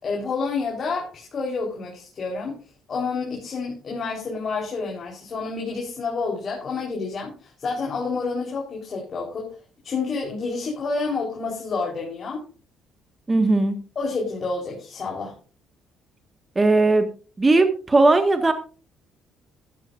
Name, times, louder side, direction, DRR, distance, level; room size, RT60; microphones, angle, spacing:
voice 1, 0.0-2.6 2.9-9.5 9.8-12.4 14.0-15.3, left 4 dB, 45° left, -1 dB, 4.1 m, -29 dB
voice 2, 13.3-13.7 16.5-17.1 17.4-18.5, right 2 dB, 20° right, 7 dB, 1.6 m, -18 dB
14.0 x 12.5 x 2.6 m, 0.35 s
cardioid pair, 95°, 0 cm